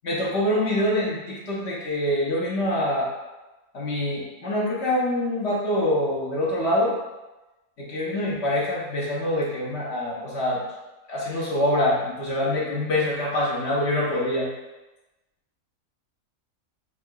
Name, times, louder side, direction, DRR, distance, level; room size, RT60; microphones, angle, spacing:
voice 1, 0.0-3.1 3.7-6.9 7.8-10.6 11.1-14.5, left 1 dB, 55° left, -5 dB, 1.0 m, -25 dB
5.8 x 2.7 x 2.2 m, 1.1 s
omnidirectional pair, 1.5 m